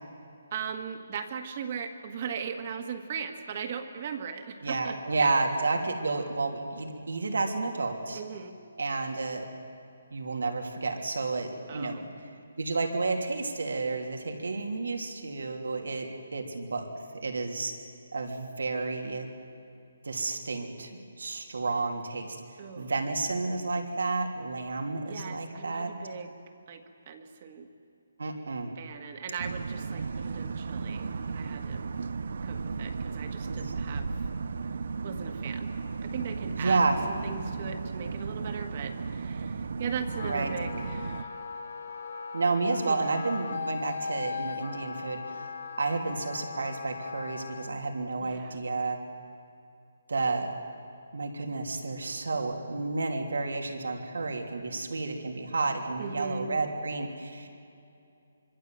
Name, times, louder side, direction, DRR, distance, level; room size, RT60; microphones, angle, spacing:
voice 1, 0.5-5.3 8.1-8.5 11.7-12.1 22.6-22.9 25.0-26.3 26.7-27.7 28.7-31.8 32.4-34.3 35.0-35.7 36.0-36.8 37.1-41.3 42.9-43.0 48.2-48.6 56.0-56.5, right 6 dB, 30° right, 6 dB, 1.7 m, -38 dB
voice 2, 4.6-8.2 8.8-9.4 10.1-12.1 12.6-16.9 17.2-17.7 18.1-19.3 20.0-20.9 21.2-22.4 22.8-25.9 28.2-28.8 33.5-33.8 36.5-37.0 40.2-40.5 42.3-45.5 45.8-49.0 50.1-50.5 51.1-57.5, right 3 dB, 85° right, 2 dB, 3.3 m, -31 dB
sound 1, 29.4-41.2, right 4 dB, 55° right, 0.8 m, -35 dB
Wind instrument woodwind instrument, 40.0-47.7, left 5 dB, 60° left, 2.8 m, -39 dB
25.0 x 24.5 x 7.8 m, 2.6 s
hypercardioid pair, 175°, 0 cm